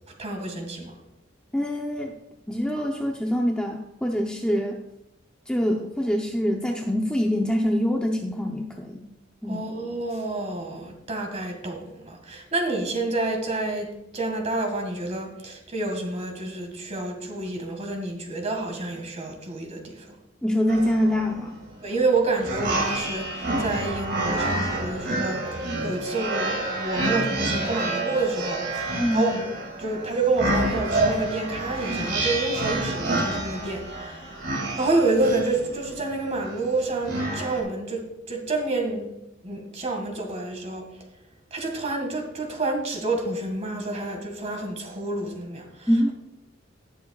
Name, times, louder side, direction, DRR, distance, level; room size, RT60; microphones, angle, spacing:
voice 1, 0.2-1.0 9.5-20.1 21.8-29.5 29.8-34.4 34.8-39.1 39.4-40.9 41.5-46.1, right 2 dB, 35° right, 3 dB, 1.9 m, -28 dB
voice 2, 1.5-2.1 2.5-4.8 5.5-9.1 9.4-9.7 20.4-21.6 28.9-29.4 45.9-46.1, equal, 5° left, 1 dB, 0.6 m, -25 dB
sound 1, 20.7-37.6, right 2 dB, 60° right, 2.3 m, -28 dB
19.0 x 6.9 x 2.4 m, 0.88 s
head